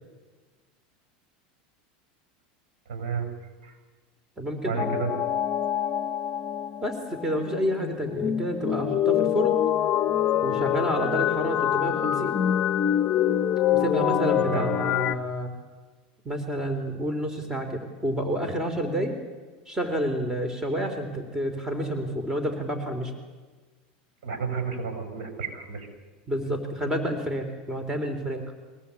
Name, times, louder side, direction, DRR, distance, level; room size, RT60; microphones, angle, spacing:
voice 1, 2.9-3.3 3.6-3.7 4.6-5.1 14.4-14.7 24.2-25.9, right 5 dB, 80° right, 5 dB, 6.8 m, -31 dB
voice 2, 4.4-4.8 6.8-9.6 10.4-12.4 13.7-15.5 16.3-19.2 19.7-23.1 26.3-28.4, equal, 15° right, 6 dB, 3.5 m, -29 dB
sound 1, 4.8-15.1, left 10 dB, 35° left, 0.9 m, -25 dB
23.0 x 17.5 x 8.4 m, 1.4 s
supercardioid pair, 110°, 5 cm